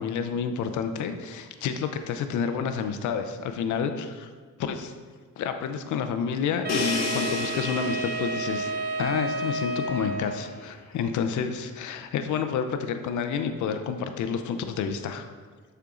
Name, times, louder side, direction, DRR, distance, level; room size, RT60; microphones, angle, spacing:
voice 1, 0.0-4.3 4.6-4.9 5.4-8.7 9.0-15.3, left 6 dB, 75° left, 8 dB, 0.7 m, -29 dB
Wind instrument woodwind instrument, 6.6-10.5, right 3 dB, 35° right, 0.7 m, -31 dB
Crash cymbal, 6.7-10.5, left 4 dB, 60° left, 1.0 m, -33 dB
6.7 x 4.5 x 3.8 m, 1.5 s
cardioid pair, 90°, 30 cm